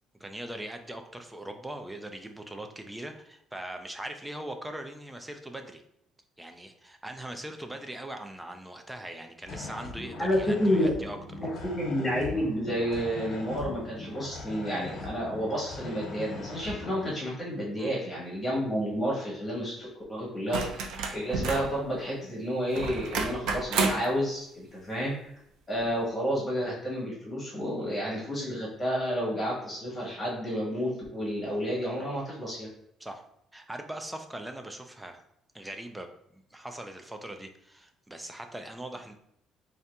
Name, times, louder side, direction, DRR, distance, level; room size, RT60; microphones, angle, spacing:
voice 1, 0.2-5.8 6.4-11.2 17.8-17.9 33.0-33.2 33.5-35.2 35.5-39.1, right 1 dB, 5° right, 5 dB, 0.4 m, -41 dB
sound 1, 9.4-17.0, left 2 dB, 50° left, 1.0 m, -41 dB
voice 2, 10.2-10.9 11.4-20.8 21.1-25.3 25.7-32.7, equal, 15° left, -5 dB, 1.5 m, -30 dB
sound 2, 20.5-21.8 22.7-24.1 25.7-25.8, right 4 dB, 80° right, 0.5 m, -30 dB
3.7 x 2.8 x 3.3 m, 0.73 s
cardioid pair, 155°, 0 cm